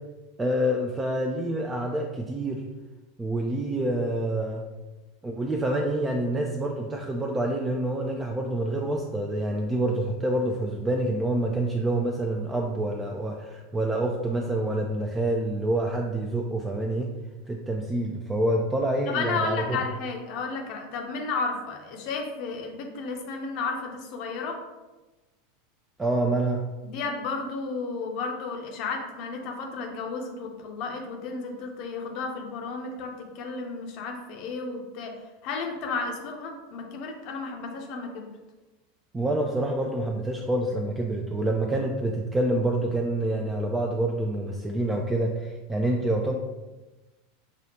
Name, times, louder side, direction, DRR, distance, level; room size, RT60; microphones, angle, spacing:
voice 1, 0.4-2.6 3.2-4.6 5.2-17.1 17.5-19.8 26.0-26.7 39.1-46.4, right 1 dB, 15° right, 1 dB, 0.4 m, -27 dB
voice 2, 19.1-24.6 26.8-35.1 35.4-38.3, left 4 dB, 45° left, 2 dB, 0.6 m, -33 dB
6.0 x 2.4 x 2.8 m, 1.1 s
figure-of-eight pair, 80°, 0 cm